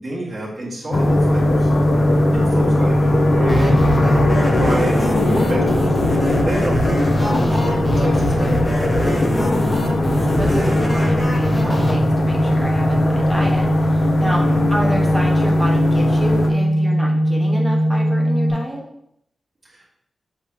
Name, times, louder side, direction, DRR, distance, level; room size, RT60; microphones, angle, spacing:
voice 1, 0.0-1.7 2.3-6.0 6.3-9.3 14.2-14.6 19.6-19.9, right 1 dB, 25° right, -8 dB, 2.0 m, -29 dB
sound 1, 0.9-16.5, left 2 dB, 45° left, 0.8 m, -20 dB
sound 2, 2.5-18.5, equal, 40° right, 2.1 m, -22 dB
sound 3, 3.5-11.9, equal, 15° left, 1.4 m, -23 dB
voice 2, 10.2-18.9, equal, ahead, -3 dB, 1.4 m, -29 dB
7.2 x 5.3 x 3.0 m, 0.75 s
wide cardioid pair, 150°, 0 cm